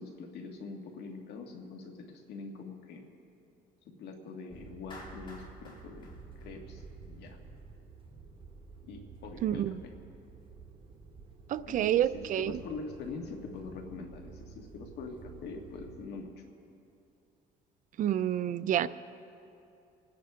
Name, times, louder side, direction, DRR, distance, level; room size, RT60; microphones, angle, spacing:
voice 1, 0.0-3.0 3.9-7.4 8.8-9.9 11.6-16.4, left 4 dB, 75° left, 2 dB, 1.9 m, -44 dB
sound 1, 4.5-16.1, right 4 dB, 30° right, 1.6 m, -51 dB
Clapping, 4.9-7.2, left 1 dB, 30° left, 2.8 m, -51 dB
voice 2, 9.4-9.7 11.5-12.6 18.0-18.9, right 11 dB, 50° right, 14 dB, 0.5 m, -28 dB
27.5 x 10.0 x 3.7 m, 2.7 s
cardioid pair, 110°, 17 cm